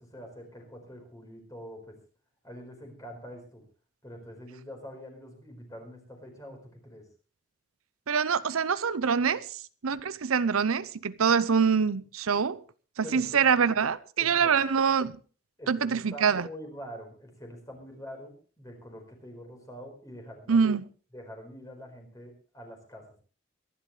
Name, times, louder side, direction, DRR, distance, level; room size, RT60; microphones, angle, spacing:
voice 1, 0.0-1.9 2.4-3.6 4.0-6.6 6.8-7.0 13.0-13.6 14.2-14.5 15.6-20.6 21.1-23.0, equal, 15° left, 4.6 m, -45 dB
voice 2, 8.1-12.6 13.0-15.2 15.7-16.5 20.5-20.8, right 6 dB, 85° right, 0.7 m, -25 dB
23.0 x 12.0 x 3.3 m
head